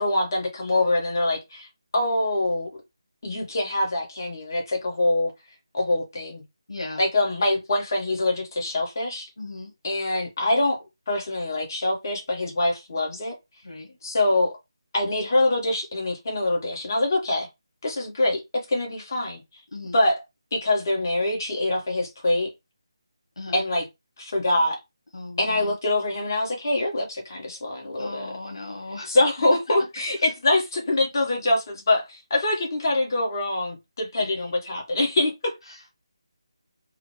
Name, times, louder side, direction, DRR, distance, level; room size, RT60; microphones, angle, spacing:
voice 1, 0.0-1.7 1.9-2.7 3.2-5.3 5.7-6.4 7.0-9.3 9.8-13.3 14.0-14.6 14.9-17.5 17.8-19.4 19.9-20.2 20.5-22.5 23.5-23.8 24.2-24.8 25.4-28.3 29.1-35.5, left 2 dB, 40° left, 1.3 m, -24 dB
voice 2, 6.7-7.0 9.4-9.7 13.6-14.0 19.7-20.0 23.4-23.6 25.1-25.8 28.0-29.2 30.2-30.3 34.2-34.3 35.7-35.9, left 2 dB, 85° left, 1.1 m, -37 dB
3.8 x 2.1 x 3.2 m
figure-of-eight pair, 170°, 3 cm